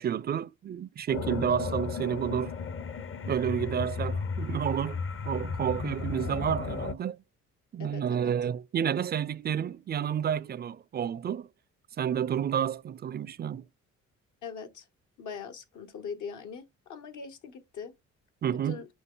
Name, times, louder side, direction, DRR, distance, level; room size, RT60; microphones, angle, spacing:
voice 1, 0.0-2.5 3.3-5.0 5.3-7.2 7.7-11.5 12.0-13.6 18.4-18.8, right 9 dB, 35° right, 0.4 m, -30 dB
sound 1, 1.1-6.9, left 5 dB, 45° left, 0.7 m, -34 dB
voice 2, 7.8-8.3 14.4-14.9 15.2-17.9 18.6-18.9, left 6 dB, 75° left, 1.3 m, -41 dB
6.0 x 5.0 x 3.8 m
cardioid pair, 90°, 30 cm